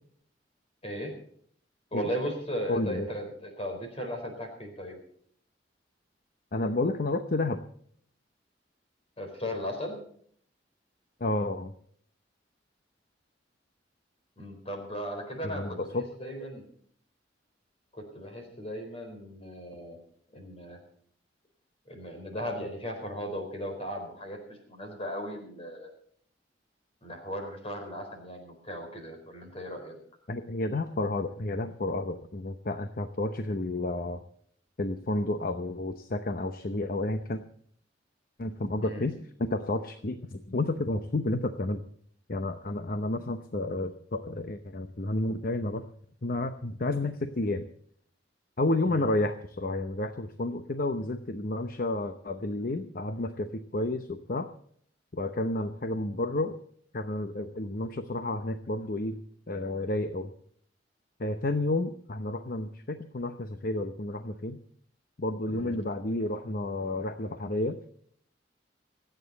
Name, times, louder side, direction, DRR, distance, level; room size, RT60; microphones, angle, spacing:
voice 1, 0.8-1.1 1.9-5.0 9.2-10.0 14.4-16.6 17.9-20.0 20.3-20.8 21.9-25.9 27.0-29.9 38.8-39.1 48.8-49.1 65.5-65.8, equal, 35° left, 4 dB, 4.3 m, -37 dB
voice 2, 2.7-3.1 6.5-7.6 11.2-11.7 15.4-16.0 30.3-34.2 34.8-37.4 38.4-39.1 39.4-41.8 42.3-45.8 46.2-47.6 48.6-54.5 55.1-56.6 56.9-59.2 59.5-60.3 61.2-64.6 65.2-67.8, left 2 dB, 50° left, 8 dB, 0.8 m, -31 dB
27.0 x 9.2 x 4.1 m, 0.62 s
head